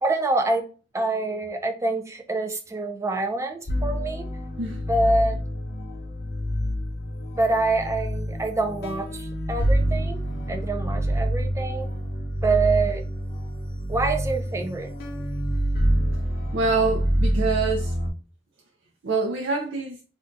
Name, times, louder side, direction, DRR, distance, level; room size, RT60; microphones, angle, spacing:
voice 1, 0.0-0.6 0.9-4.3 4.9-5.4 7.3-11.9 12.4-13.0 13.9-14.9, right 3 dB, 15° right, 0.4 m, -26 dB
sound 1, 3.7-18.1, equal, 55° left, 0.8 m, -27 dB
voice 2, 16.5-17.9 19.0-20.0, right 3 dB, 80° right, 0.5 m, -25 dB
2.6 x 2.2 x 3.7 m
head